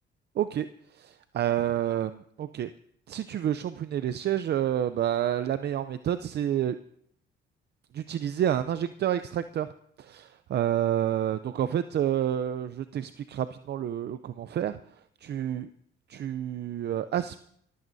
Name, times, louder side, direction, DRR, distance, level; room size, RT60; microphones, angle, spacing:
voice 1, 0.4-0.7 1.0-2.7 3.1-6.8 7.9-9.7 10.0-14.8 15.2-15.7 16.1-17.4, right 10 dB, 55° right, 12 dB, 0.5 m, -29 dB
23.5 x 15.0 x 2.7 m, 0.68 s
cardioid pair, 90°, 20 cm